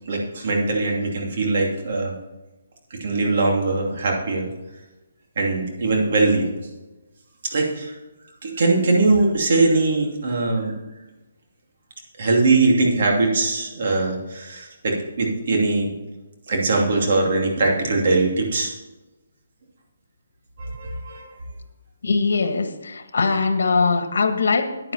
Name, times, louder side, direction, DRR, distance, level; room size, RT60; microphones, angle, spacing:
voice 1, 0.1-2.1 2.9-4.5 5.4-6.5 7.4-7.9 8.4-10.7 12.2-15.9 16.5-18.7 20.6-21.3, right 3 dB, 50° right, 0 dB, 2.7 m, -21 dB
voice 2, 22.0-24.9, left 4 dB, 75° left, 8 dB, 1.5 m, -21 dB
10.0 x 9.8 x 4.3 m, 1.1 s
hypercardioid pair, 165°, 0 cm